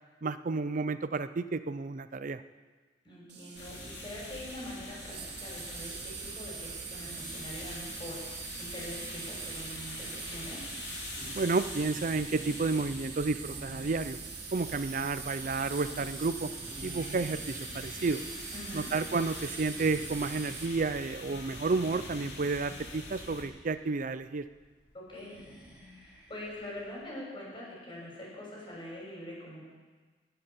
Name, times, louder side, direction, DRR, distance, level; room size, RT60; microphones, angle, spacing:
voice 1, 0.2-2.4 11.3-14.2 14.5-16.5 16.8-18.2 18.7-24.4, right 3 dB, 50° right, 12 dB, 0.5 m, -31 dB
voice 2, 3.0-10.6 18.5-18.9 24.9-25.3 26.0-29.6, left 1 dB, 30° left, -5 dB, 6.3 m, -44 dB
Insect, 3.3-20.7, right 7 dB, 75° right, 1.8 m, -44 dB
sound 1, 3.5-23.4, left 2 dB, 80° left, 2.9 m, -44 dB
sound 2, 11.1-26.9, right 1 dB, 5° right, 4.3 m, -51 dB
18.5 x 8.1 x 7.0 m, 1.3 s
head